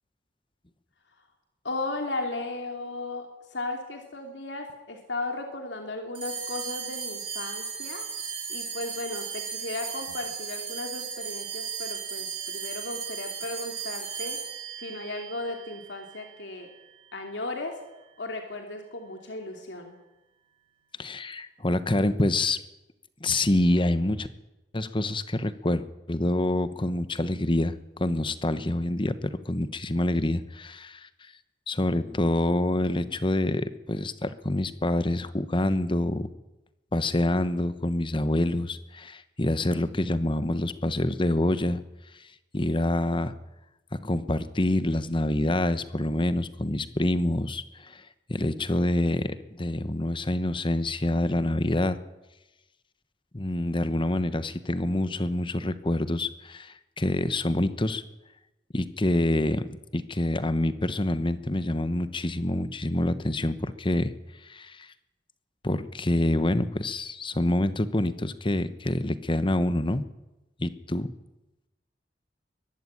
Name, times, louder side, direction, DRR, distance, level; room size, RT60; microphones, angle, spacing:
voice 1, 1.6-8.1 8.5-14.4 14.8-16.7 17.1-17.7 18.2-20.0, left 2 dB, 85° left, 3 dB, 2.8 m, -35 dB
sound 1, 6.1-16.8, right 6 dB, 30° right, 7.5 m, -36 dB
voice 2, 21.0-22.6 23.2-24.3 24.7-31.1 31.7-36.3 36.9-41.8 42.5-43.3 43.9-48.0 48.3-52.0 53.3-58.0 58.7-64.1 64.4-64.9 65.6-70.0 70.6-71.1, left 1 dB, 30° left, 13 dB, 1.1 m, -26 dB
23.0 x 12.0 x 9.9 m, 0.98 s
head